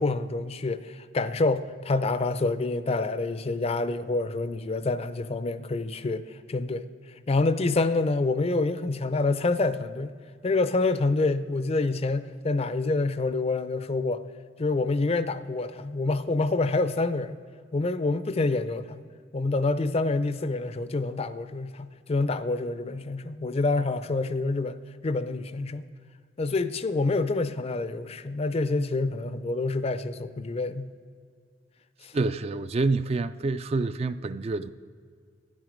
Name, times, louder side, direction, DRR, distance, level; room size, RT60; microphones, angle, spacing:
voice 1, 0.0-6.9 7.3-10.1 10.4-14.2 14.6-17.4 17.7-19.0 19.3-25.9 26.4-30.9 32.0-32.1, left 3 dB, 35° left, 0.5 m, -27 dB
voice 2, 32.1-34.7, right 3 dB, 35° right, 0.3 m, -27 dB
13.0 x 10.0 x 5.1 m
head